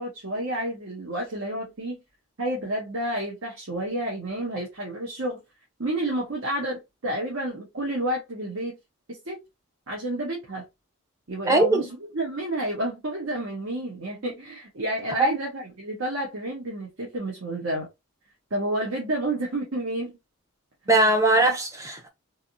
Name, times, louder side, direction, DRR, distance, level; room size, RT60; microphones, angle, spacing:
voice 1, 0.0-2.0 2.4-5.4 5.8-8.8 9.3-9.4 9.9-10.6 11.3-17.9 18.5-20.2 20.9-21.0, right 1 dB, 65° right, 1.0 m, -30 dB
voice 2, 11.5-11.9 15.2-15.4 20.9-22.1, right 2 dB, 15° right, 0.7 m, -20 dB
3.3 x 2.6 x 2.7 m
head